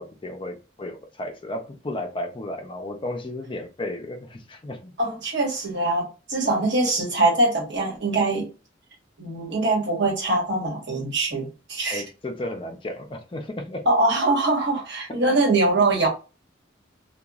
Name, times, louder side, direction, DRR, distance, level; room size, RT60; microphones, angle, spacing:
voice 1, 0.0-4.9 6.4-6.5 11.9-13.9, left 1 dB, 25° left, 0.5 m, -33 dB
voice 2, 5.0-8.5 9.2-12.0 13.8-16.1, right 2 dB, 65° right, 1.3 m, -23 dB
2.9 x 2.3 x 2.3 m
head